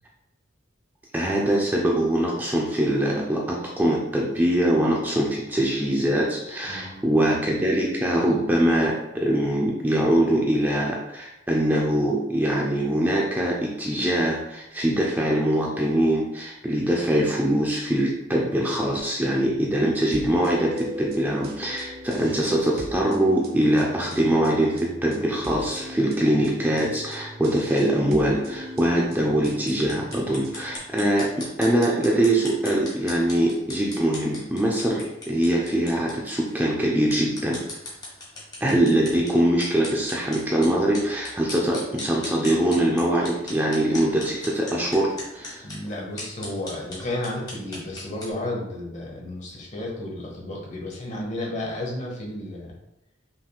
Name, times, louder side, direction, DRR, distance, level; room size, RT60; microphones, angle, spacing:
voice 1, 1.1-37.6 38.6-45.7, right 1 dB, 10° right, -3 dB, 0.4 m, -23 dB
voice 2, 6.7-7.2 22.1-22.5 45.6-52.7, left 1 dB, 35° left, -2 dB, 1.0 m, -33 dB
sound 1, 20.1-30.8, equal, 50° right, 0.7 m, -39 dB
sound 2, 29.4-48.3, left 1 dB, 20° left, 1.4 m, -40 dB
5.7 x 3.3 x 2.3 m, 0.90 s
head